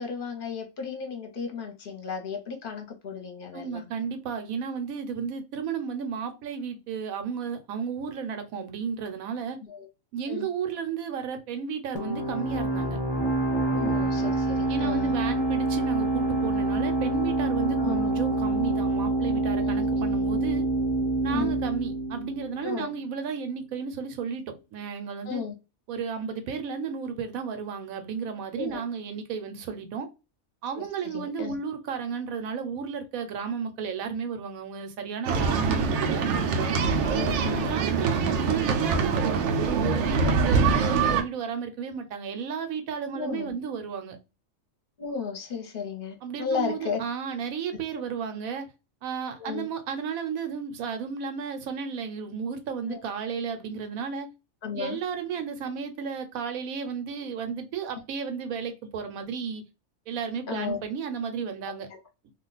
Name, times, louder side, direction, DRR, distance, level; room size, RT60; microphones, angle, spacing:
voice 1, 0.0-3.9 9.7-9.9 10.3-10.5 13.7-15.1 17.8-18.1 19.6-19.7 21.3-21.5 22.6-22.9 25.3-25.5 28.6-28.8 31.1-31.6 37.1-37.7 43.1-43.5 45.0-47.0 49.4-49.7 52.9-53.0 54.6-55.0 60.5-60.8, left 6 dB, 45° left, 0.9 m, -34 dB
voice 2, 3.5-9.6 10.1-13.0 14.7-20.6 21.2-24.4 24.7-25.4 25.9-30.1 30.6-36.3 37.4-44.2 46.2-48.7 49.0-54.3 54.8-59.6 60.1-61.9, right 6 dB, 85° right, 1.1 m, -33 dB
sound 1, 11.9-23.3, right 2 dB, 5° right, 0.8 m, -26 dB
sound 2, 35.3-41.2, right 5 dB, 65° right, 0.8 m, -24 dB
2.4 x 2.3 x 3.8 m
omnidirectional pair, 1.4 m